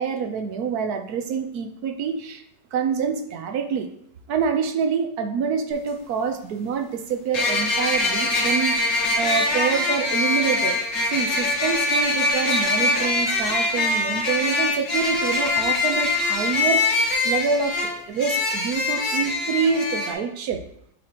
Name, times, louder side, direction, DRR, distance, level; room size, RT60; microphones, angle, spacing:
voice 1, 0.0-2.4 2.7-3.9 4.3-10.7 11.1-20.6, right 6 dB, 65° right, 6 dB, 1.2 m, -26 dB
sound 1, 5.7-5.8 7.3-20.1, left 2 dB, 85° left, 2.2 m, -23 dB
8.3 x 4.7 x 3.0 m, 0.71 s
omnidirectional pair, 1.9 m